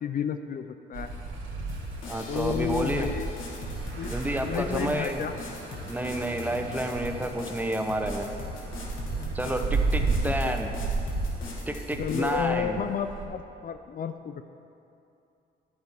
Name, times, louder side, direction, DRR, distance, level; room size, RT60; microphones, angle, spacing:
voice 1, 0.0-1.1 2.3-3.3 4.0-4.1 4.4-5.4 9.2-9.3 9.6-9.7 10.2-10.6 12.0-14.4, left 8 dB, 45° left, 9 dB, 0.4 m, -31 dB
sound 1, 0.9-13.2, right 3 dB, 85° right, 1.4 m, -33 dB
sound 2, 1.7-12.4, left 3 dB, 80° left, 1.5 m, -41 dB
voice 2, 2.1-3.1 4.1-5.2 5.9-8.3 9.3-10.7 11.7-12.8, right 1 dB, 10° right, 5 dB, 0.7 m, -30 dB
11.0 x 8.5 x 3.5 m, 2.7 s
cardioid pair, 90°, 20 cm